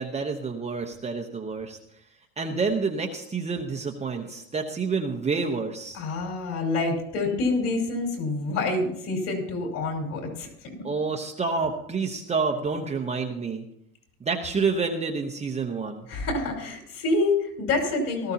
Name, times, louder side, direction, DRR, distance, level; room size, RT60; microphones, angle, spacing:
voice 1, 0.0-1.8 2.4-6.0 10.8-13.6 14.2-16.1, right 4 dB, 15° right, 2 dB, 0.9 m, -28 dB
voice 2, 5.9-10.9 16.1-18.3, left 3 dB, 45° left, 1 dB, 5.1 m, -27 dB
18.5 x 13.5 x 2.9 m, 0.74 s
supercardioid pair, 120°, 44 cm